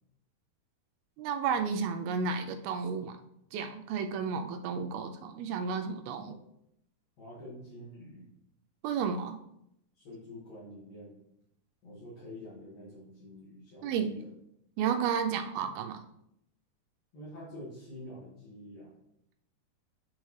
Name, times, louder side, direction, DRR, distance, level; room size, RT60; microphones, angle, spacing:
voice 1, 1.2-3.2 3.5-6.4 8.8-9.4 13.8-14.2 14.8-16.0, right 6 dB, 80° right, 6 dB, 2.3 m, -32 dB
voice 2, 7.2-8.3 9.9-11.2 11.8-14.3 17.1-18.9, left 1 dB, 65° left, -8 dB, 3.4 m, -47 dB
11.0 x 3.9 x 3.2 m, 0.78 s
omnidirectional pair, 4.5 m